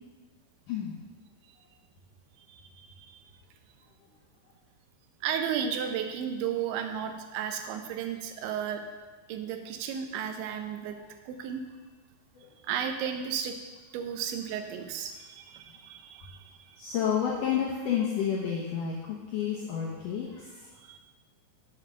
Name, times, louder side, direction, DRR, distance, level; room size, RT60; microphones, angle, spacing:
voice 1, 2.5-3.2 5.2-8.8 9.3-11.0 11.3-11.6 12.6-13.6 13.9-16.8 20.8-21.0, right 8 dB, 85° right, 6 dB, 3.2 m, -34 dB
voice 2, 16.8-20.7, left 8 dB, 80° left, -3 dB, 1.9 m, -30 dB
7.6 x 7.5 x 6.6 m, 1.2 s
omnidirectional pair, 5.2 m